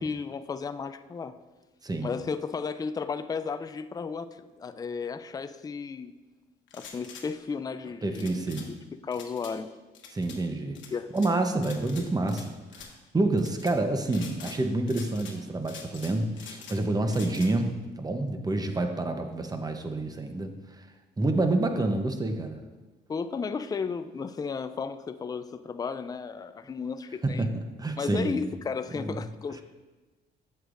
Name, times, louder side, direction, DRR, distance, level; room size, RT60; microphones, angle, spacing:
voice 1, 0.0-1.4 2.0-6.1 6.7-8.8 9.0-9.7 10.9-11.1 23.1-27.5 28.0-29.6, left 5 dB, 20° left, 11 dB, 0.3 m, -34 dB
voice 2, 1.8-2.2 8.0-8.7 10.1-10.8 11.1-20.9 21.2-22.6 27.2-27.5 27.8-28.4 28.9-29.2 29.5-29.6, right 2 dB, 20° right, 6 dB, 0.8 m, -28 dB
sound 1, 6.7-7.3 8.1-8.7 9.1-9.5 9.9-10.4 10.7-11.3 11.6-12.4 12.7-12.9 13.4-13.7 14.1-14.6 14.9-15.4 15.6-16.8 17.1-17.5, left 6 dB, 70° left, 1.1 m, -45 dB
8.0 x 8.0 x 2.5 m, 1.2 s
cardioid pair, 90°, 20 cm